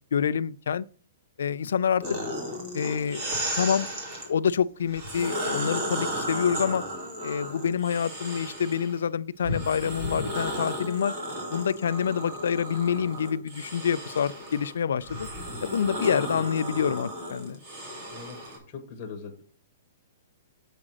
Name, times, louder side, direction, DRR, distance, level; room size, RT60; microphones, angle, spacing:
voice 1, 0.1-0.8 1.4-2.0 2.7-3.3 3.6-3.9 4.2-6.8 7.2-11.1 11.5-15.3 15.6-17.6, left 7 dB, 75° left, 0.3 m, -27 dB
sound 1, 2.0-4.3 4.9-9.0 9.4-18.6, equal, 30° right, 2.1 m, -34 dB
voice 2, 18.1-19.4, left 6 dB, 15° left, 1.2 m, -40 dB
7.4 x 4.9 x 6.3 m
hypercardioid pair, 180°, 0 cm